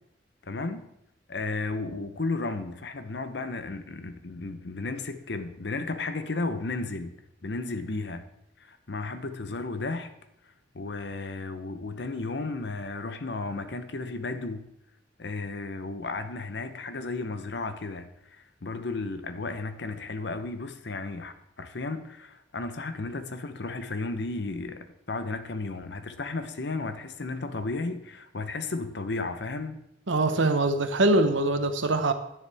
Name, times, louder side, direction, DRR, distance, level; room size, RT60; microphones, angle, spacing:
voice 1, 0.4-0.9 1.3-7.1 7.4-8.2 8.6-10.1 10.7-14.7 15.2-29.8, left 3 dB, 65° left, 0.8 m, -34 dB
voice 2, 30.1-32.1, right 2 dB, 85° right, 0.9 m, -23 dB
10.5 x 9.9 x 3.5 m
head